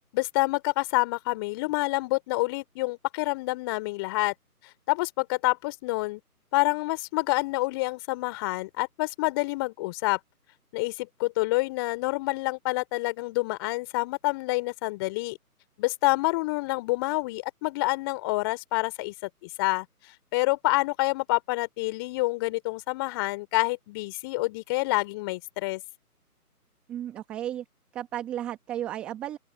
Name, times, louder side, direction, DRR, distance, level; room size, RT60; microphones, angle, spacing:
voice 1, 0.1-4.3 4.9-6.2 6.5-10.2 10.7-15.4 15.8-19.1 19.4-19.9 20.3-25.8, left 22 dB, 15° left, 3.0 m, -27 dB
voice 2, 26.9-27.6 27.9-29.4, right 11 dB, 5° right, 1.0 m, -34 dB
open air
figure-of-eight pair, 150°, 47 cm